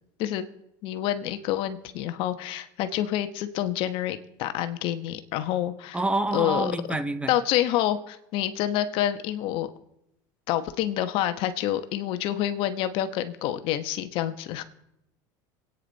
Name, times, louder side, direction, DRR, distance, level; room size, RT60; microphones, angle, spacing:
voice 1, 0.8-6.0 6.3-7.0 7.3-9.7 10.5-14.6, left 12 dB, 65° left, 10 dB, 1.2 m, -28 dB
voice 2, 5.9-7.3, right 2 dB, 10° right, 10 dB, 1.1 m, -27 dB
25.5 x 9.4 x 4.1 m, 0.80 s
supercardioid pair, 105°, 10 cm